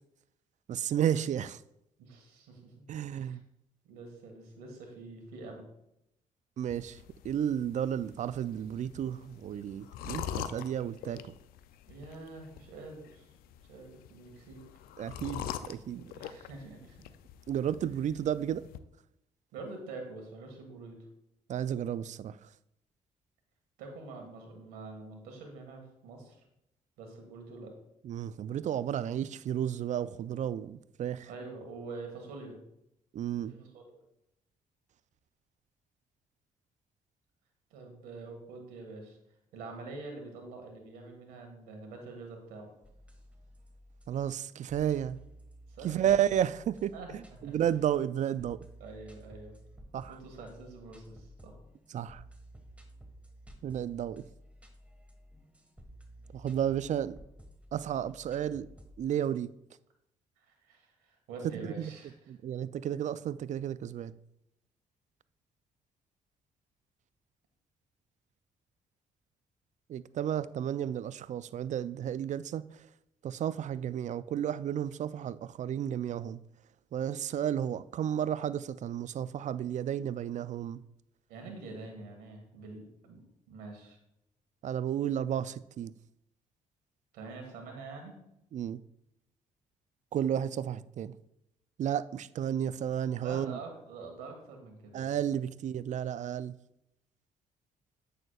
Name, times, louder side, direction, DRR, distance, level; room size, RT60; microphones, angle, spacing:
voice 1, 0.7-1.6 2.9-3.4 6.6-7.0 7.2-11.2 15.0-16.1 17.5-18.7 21.5-22.5 28.0-31.3 33.1-33.5 44.1-45.2 45.8-48.7 49.9-50.2 51.9-52.2 53.6-54.2 56.3-57.2 57.7-58.7 59.0-59.5 61.6-61.9 62.3-64.1 69.9-72.9 73.2-76.4 76.9-80.8 84.6-85.9 88.5-88.8 90.1-91.2 91.8-93.6 94.9-96.6, right 10 dB, 50° right, 0.4 m, -32 dB
voice 2, 2.0-3.4 3.8-5.6 11.9-13.3 13.7-14.6 16.1-17.1 19.5-21.0 23.8-26.4 27.0-27.8 31.2-32.6 33.4-34.0 37.7-39.2 39.5-42.7 45.7-46.1 46.9-47.6 48.8-49.5 50.1-51.6 60.4-62.3 81.3-84.0 87.1-88.2 93.2-95.4, right 3 dB, 85° right, 1.7 m, -46 dB
sound 1, 6.7-18.8, left 10 dB, 75° left, 0.4 m, -44 dB
sound 2, 42.8-59.4, right 1 dB, 10° right, 1.5 m, -54 dB
8.7 x 6.5 x 2.4 m
supercardioid pair, 55°, 15 cm